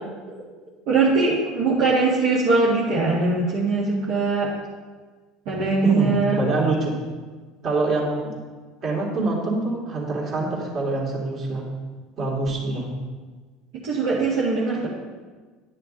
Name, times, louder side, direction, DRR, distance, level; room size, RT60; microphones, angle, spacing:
voice 1, 0.9-4.5 5.5-6.4 13.8-14.9, right 3 dB, 65° right, -8 dB, 2.1 m, -21 dB
voice 2, 5.8-6.9 7.6-8.3 8.8-11.7 12.2-12.9, right 2 dB, 50° right, -3 dB, 3.1 m, -25 dB
11.5 x 6.5 x 4.1 m, 1.4 s
hypercardioid pair, 75°, 0 cm